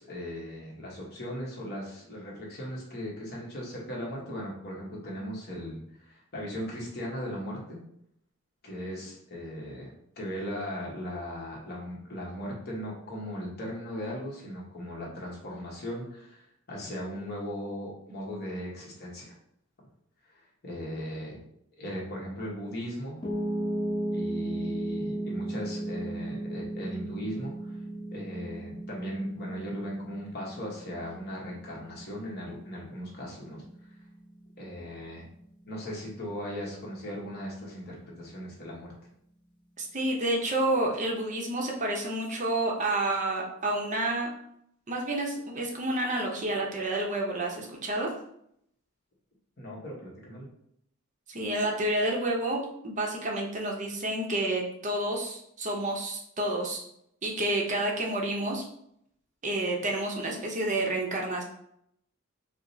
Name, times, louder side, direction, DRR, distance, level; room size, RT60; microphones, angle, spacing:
voice 1, 0.0-7.8 8.6-19.4 20.2-21.4 21.8-23.2 24.1-27.8 28.1-34.0 34.6-35.3 35.7-38.9 49.6-50.5, equal, 45° left, -4 dB, 1.0 m, -38 dB
Piano, 23.2-35.4, right 1 dB, 20° left, 0.6 m, -36 dB
voice 2, 39.8-44.3 44.9-48.1 51.3-56.8 57.2-58.6 59.4-61.4, right 1 dB, 35° right, 0 dB, 0.6 m, -29 dB
4.7 x 2.0 x 2.6 m, 0.73 s
head